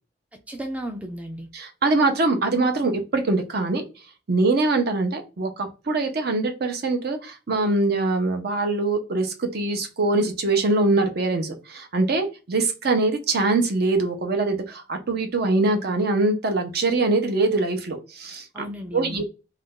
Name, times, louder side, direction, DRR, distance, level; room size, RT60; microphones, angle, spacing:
voice 1, 0.3-1.5 18.5-19.2, right 1 dB, 10° right, 0.3 m, -34 dB
voice 2, 1.5-3.8 4.3-18.6 18.9-19.2, right 2 dB, 55° right, 0.6 m, -23 dB
2.5 x 2.2 x 3.6 m
head